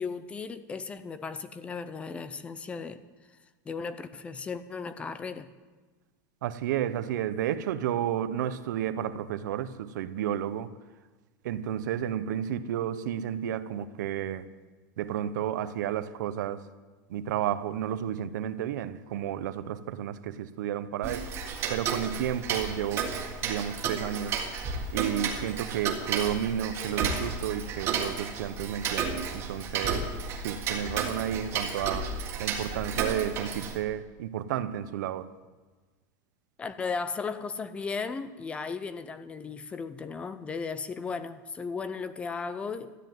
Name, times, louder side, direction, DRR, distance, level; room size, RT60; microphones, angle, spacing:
voice 1, 0.0-3.0 3.7-5.5 36.6-42.9, left 5 dB, 10° left, 0.5 m, -36 dB
voice 2, 6.4-10.7 11.4-14.5 15.0-16.7 17.1-21.3 21.7-23.1 23.4-24.4 24.9-30.1 30.4-32.1 32.4-35.3, right 10 dB, 80° right, 0.9 m, -32 dB
Tick-tock, 21.0-33.8, right 5 dB, 25° right, 1.7 m, -32 dB
13.5 x 9.8 x 9.2 m
supercardioid pair, 175°, 10 cm